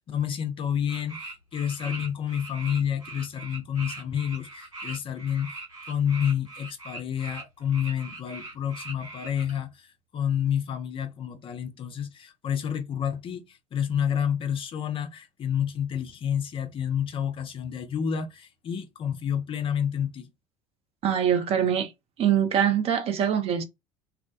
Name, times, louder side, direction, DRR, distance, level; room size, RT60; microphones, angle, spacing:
voice 1, 0.0-5.5 5.9-20.3, left 9 dB, 30° left, 0.4 m, -29 dB
sound 1, 0.9-9.6, right 3 dB, 85° right, 1.1 m, -41 dB
voice 2, 21.0-21.9 22.2-23.6, right 9 dB, 35° right, 0.5 m, -23 dB
2.3 x 2.1 x 2.5 m
figure-of-eight pair, 65°, 17 cm